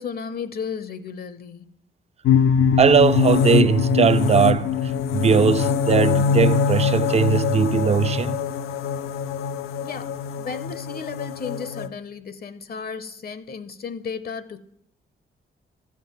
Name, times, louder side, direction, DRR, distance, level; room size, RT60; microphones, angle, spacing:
voice 1, 0.0-1.7 9.8-14.6, left 6 dB, 45° left, 0.6 m, -34 dB
sound 1, 2.2-11.9, left 6 dB, 90° left, 0.5 m, -22 dB
voice 2, 2.8-8.4, right 6 dB, 30° right, 0.4 m, -19 dB
13.0 x 7.4 x 3.9 m
cardioid pair, 80°, 21 cm